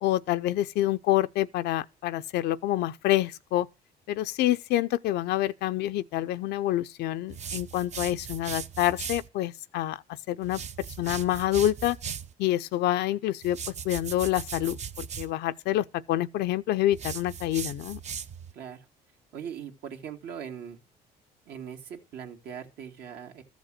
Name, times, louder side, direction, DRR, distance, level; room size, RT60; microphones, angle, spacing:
voice 1, 0.0-3.7 4.1-10.0 10.3-10.6 11.0-12.0 12.4-13.6 13.8-18.0, left 14 dB, 80° left, 0.6 m, -27 dB
sound 1, 7.3-9.3 10.4-12.3 13.4-15.3 16.9-18.5, right 7 dB, 40° right, 0.7 m, -38 dB
voice 2, 18.5-18.9 19.3-20.8 21.5-23.4, right 8 dB, 70° right, 2.1 m, -40 dB
14.0 x 5.2 x 7.6 m
cardioid pair, 110°, 17 cm